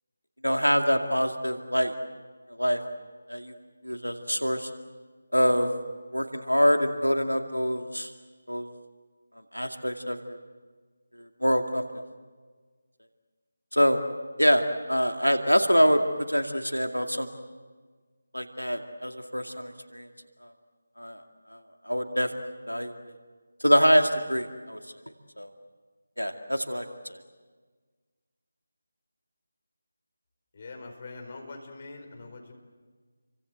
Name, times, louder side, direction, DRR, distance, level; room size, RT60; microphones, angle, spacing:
voice 1, 0.4-1.9 2.6-2.8 3.3-3.5 3.8-4.7 5.3-5.7 6.1-8.1 8.5-8.7 9.5-10.4 11.2-11.8 13.7-14.0 14.4-17.3 18.3-20.1 21.0-21.2 21.5-21.6 21.9-22.9 23.6-24.8 25.4-25.5 26.2-27.2, equal, 90° left, 5 dB, 2.3 m, -25 dB
voice 2, 30.5-32.5, left 3 dB, 35° left, 3 dB, 4.8 m, -43 dB
29.5 x 24.5 x 7.9 m, 1.4 s
figure-of-eight pair, 160°, 0 cm